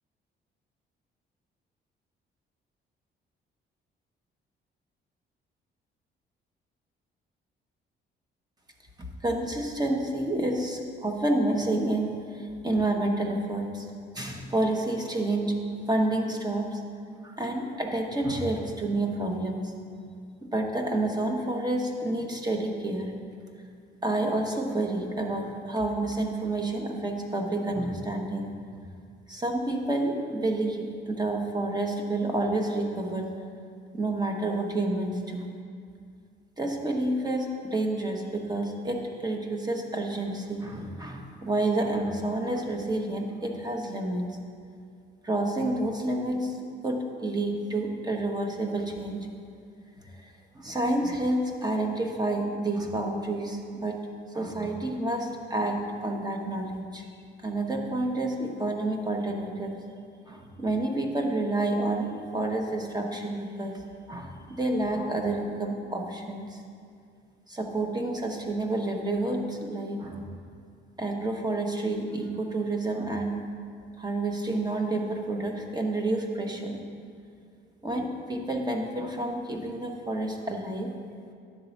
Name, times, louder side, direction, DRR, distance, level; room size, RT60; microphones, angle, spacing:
voice 1, 9.0-13.9 14.1-15.6 15.9-16.8 17.2-19.7 20.4-23.1 24.0-28.5 29.3-33.3 33.9-35.5 36.6-44.4 45.2-46.6 46.8-49.3 50.1-54.0 54.3-57.0 57.4-59.8 60.3-63.8 64.1-66.6 67.5-70.3 71.0-73.4 74.0-76.8 77.8-80.9, right 2 dB, 20° right, 2 dB, 1.1 m, -29 dB
10.5 x 3.8 x 7.1 m, 2.3 s
cardioid pair, 90°, 20 cm